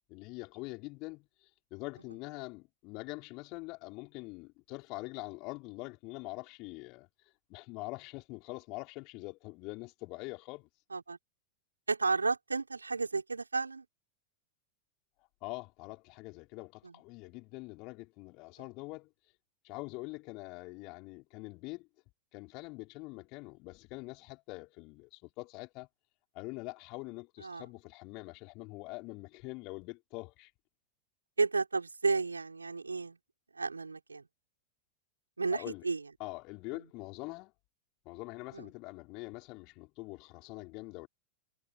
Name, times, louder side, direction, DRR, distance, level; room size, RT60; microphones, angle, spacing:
voice 1, 0.1-7.1 7.5-10.7 15.4-19.1 19.6-21.9 22.3-25.9 26.3-30.5 35.5-35.9 36.2-37.5 38.1-41.1, left 25 dB, 40° left, 5.2 m, -44 dB
voice 2, 11.9-13.8 16.8-16.9 27.4-27.7 31.4-33.2 33.5-34.2 35.4-36.0 38.5-38.7, right 4 dB, 80° right, 4.4 m, -32 dB
figure-of-eight pair, 90°, 0 cm